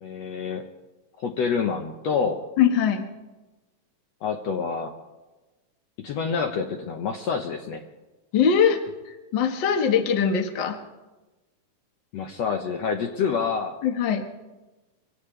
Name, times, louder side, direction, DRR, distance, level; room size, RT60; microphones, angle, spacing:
voice 1, 0.0-0.7 1.2-2.4 4.2-4.9 6.0-7.8 12.1-13.8, left 6 dB, 65° left, 4 dB, 2.0 m, -27 dB
voice 2, 2.6-3.1 8.3-8.8 9.1-10.8 13.8-14.2, left 7 dB, 45° left, 5 dB, 1.8 m, -22 dB
24.0 x 17.0 x 3.3 m, 1.1 s
omnidirectional pair, 3.6 m